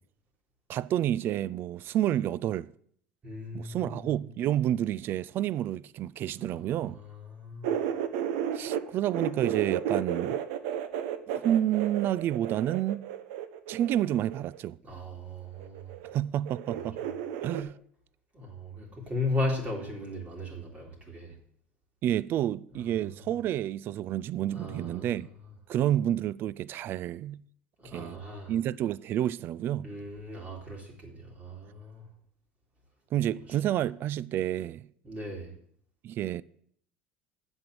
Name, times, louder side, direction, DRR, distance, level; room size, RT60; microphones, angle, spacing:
voice 1, 0.7-2.7 3.5-7.0 8.5-10.4 11.3-13.1 13.7-14.8 16.1-17.0 17.4-17.7 22.0-25.3 25.7-27.4 27.8-28.2 28.5-29.9 33.1-34.9 36.0-36.4, right 12 dB, 50° right, 0.3 m, -29 dB
voice 2, 3.2-4.1 6.4-7.7 14.8-16.0 17.0-17.1 18.3-21.3 22.8-23.0 24.5-25.2 27.8-28.5 29.8-32.0 35.0-35.5, left 2 dB, 30° right, 2.8 m, -37 dB
sound 1, 7.6-8.8 9.1-14.6 15.6-16.2 16.5-17.6, right 9 dB, 75° right, 0.8 m, -33 dB
7.8 x 5.5 x 7.6 m
hypercardioid pair, 90°, 5 cm